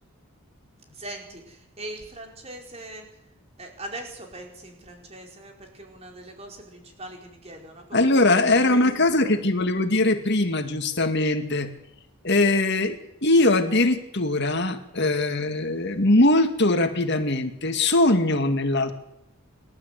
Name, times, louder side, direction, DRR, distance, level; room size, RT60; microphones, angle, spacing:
voice 1, 0.9-3.0 3.6-9.3, right 1 dB, 30° right, 2 dB, 4.7 m, -41 dB
voice 2, 7.9-11.7 12.2-13.0 13.2-18.9, left 2 dB, 50° left, 7 dB, 2.1 m, -21 dB
27.5 x 12.5 x 8.3 m, 0.86 s
head